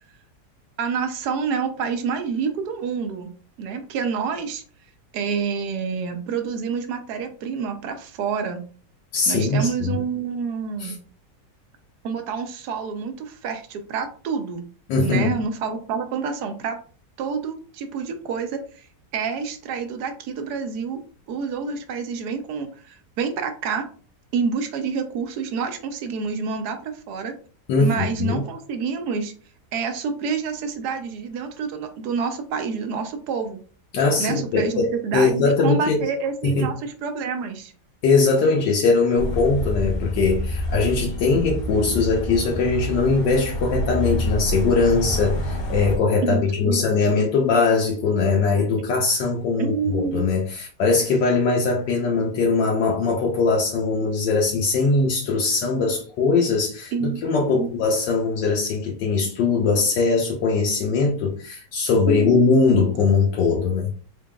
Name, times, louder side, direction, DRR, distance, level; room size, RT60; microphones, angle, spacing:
voice 1, 0.8-3.3 3.6-4.6 5.1-8.6 9.3-10.9 12.0-14.6 15.0-16.8 17.2-18.9 19.1-21.0 21.3-23.9 24.3-27.3 27.8-29.3 29.7-33.6 34.2-37.7 46.2-46.8 49.6-50.3 56.9-57.2 57.5-57.7 62.1-62.4, right 5 dB, 75° right, 7 dB, 1.1 m, -28 dB
voice 2, 9.1-9.9 10.8-10.9 14.9-15.3 27.7-28.4 33.9-35.9 36.4-36.7 38.0-64.0, left 4 dB, 85° left, -2 dB, 1.4 m, -21 dB
sound 1, 39.2-46.0, left 1 dB, 60° left, 1.4 m, -27 dB
3.9 x 3.6 x 2.2 m, 0.42 s
omnidirectional pair, 1.9 m